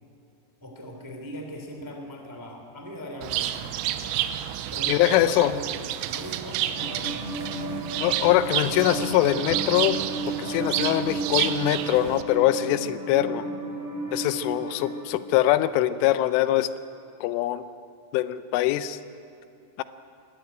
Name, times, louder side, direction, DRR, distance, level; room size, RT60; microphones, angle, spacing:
voice 1, 0.6-4.3 4.7-5.8 6.1-7.2, equal, 10° right, 2 dB, 0.9 m, -40 dB
Bird, 3.2-12.2, right 12 dB, 85° right, 3.2 m, -30 dB
voice 2, 4.9-5.5 8.0-10.0 10.3-13.5 14.1-16.7 17.2-17.7 18.1-19.0 19.8-19.9, left 14 dB, 85° left, 13 dB, 3.1 m, -23 dB
sound 1, 6.8-15.0, right 1 dB, 60° right, 4.7 m, -33 dB
21.0 x 14.0 x 9.2 m, 2.5 s
omnidirectional pair, 5.7 m